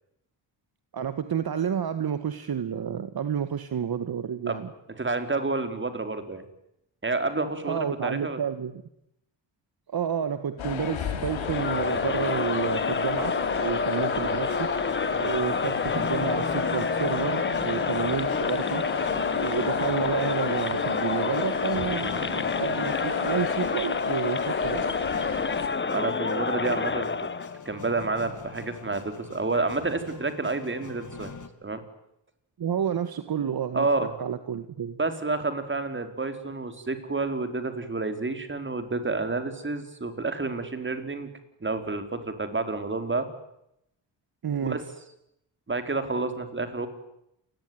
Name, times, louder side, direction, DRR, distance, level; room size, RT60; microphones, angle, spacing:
voice 1, 0.9-4.7 7.7-8.7 9.9-14.7 15.1-18.8 19.3-24.9 32.6-33.9 34.2-35.0 44.4-44.8, right 8 dB, 50° right, 11 dB, 1.8 m, -30 dB
voice 2, 5.0-6.4 7.0-8.4 15.2-15.4 25.9-27.1 27.6-31.3 31.6-31.8 33.7-34.1 35.0-41.3 41.6-43.3 44.6-44.8 45.7-46.9, right 3 dB, 25° right, 8 dB, 4.5 m, -29 dB
sound 1, 10.6-25.7, left 8 dB, 85° left, 4.8 m, -34 dB
Crowd, 11.3-27.6, left 4 dB, 25° left, 1.2 m, -28 dB
sound 2, 14.4-31.5, left 4 dB, 40° left, 3.0 m, -42 dB
28.5 x 21.5 x 9.6 m, 0.80 s
cardioid pair, 105°, 45 cm